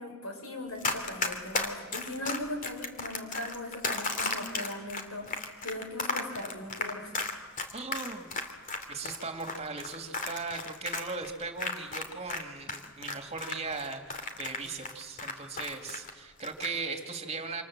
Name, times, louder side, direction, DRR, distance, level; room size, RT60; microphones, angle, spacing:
voice 1, 0.0-7.1, left 1 dB, 80° left, 3 dB, 6.7 m, -39 dB
Run, 0.8-12.4 12.7-16.1 16.4-16.7, left 3 dB, 40° left, 2.7 m, -34 dB
voice 2, 7.7-8.3 8.9-17.6, right 4 dB, 30° right, 5 dB, 2.8 m, -38 dB
28.0 x 27.0 x 7.6 m, 1.5 s
head